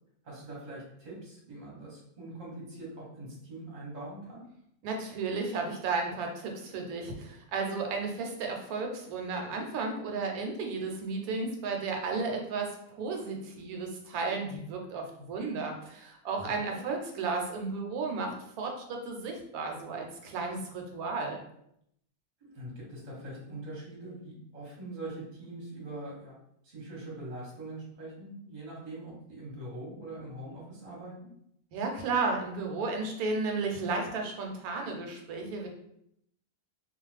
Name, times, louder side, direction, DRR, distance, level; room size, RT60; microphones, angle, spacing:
voice 1, 0.2-4.4 16.4-16.8 22.4-26.4 26.6-31.1, right 2 dB, 35° right, -4 dB, 0.8 m, -43 dB
voice 2, 4.8-21.4 31.7-35.7, right 4 dB, 80° right, 2 dB, 1.1 m, -33 dB
2.4 x 2.2 x 3.1 m, 0.75 s
omnidirectional pair, 1.6 m